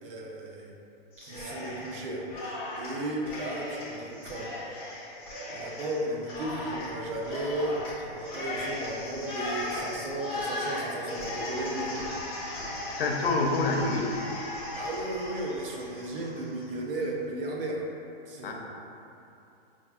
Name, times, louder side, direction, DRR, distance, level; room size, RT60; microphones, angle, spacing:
voice 1, 0.0-0.8 1.2-4.5 5.5-12.0 14.8-17.9 18.3-18.5, right 1 dB, 65° right, -1 dB, 0.7 m, -35 dB
Cheering, 1.1-2.0 2.3-16.7, left 1 dB, 10° left, 0.5 m, -37 dB
voice 2, 12.9-14.2 18.4-18.5, left 3 dB, 70° left, 1 dB, 0.6 m, -27 dB
5.5 x 2.4 x 2.3 m, 2.7 s
hypercardioid pair, 170°, 30 cm